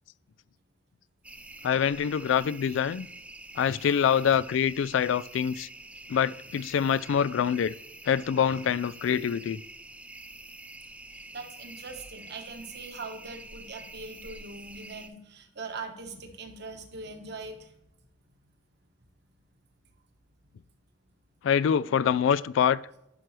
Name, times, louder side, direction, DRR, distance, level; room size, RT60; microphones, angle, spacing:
sound 1, 1.2-15.1, right 2 dB, 5° right, 0.4 m, -46 dB
voice 1, 1.6-3.1 3.6-5.7 6.1-7.7 8.1-9.6 21.4-22.8, left 8 dB, 75° left, 0.3 m, -25 dB
voice 2, 11.3-17.7, right 3 dB, 60° right, 1.2 m, -41 dB
11.0 x 6.0 x 3.2 m
head